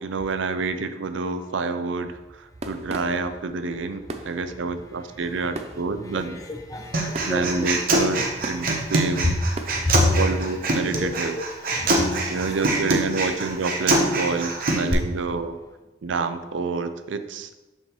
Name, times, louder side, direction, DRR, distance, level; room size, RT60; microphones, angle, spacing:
voice 1, 0.0-6.4 7.2-9.4 10.1-11.4 12.3-15.6 16.0-17.5, right 4 dB, 90° right, 10 dB, 0.5 m, -28 dB
sound 1, 2.0-10.0, right 2 dB, 35° right, 0.5 m, -40 dB
voice 2, 6.5-7.7 8.6-9.4 9.6-10.2 10.9-12.6 14.3-14.4, left 2 dB, 20° left, 4 dB, 0.7 m, -29 dB
Human voice, 6.9-14.9, right 2 dB, 50° right, 1.0 m, -24 dB
6.6 x 6.1 x 3.1 m, 1.1 s
head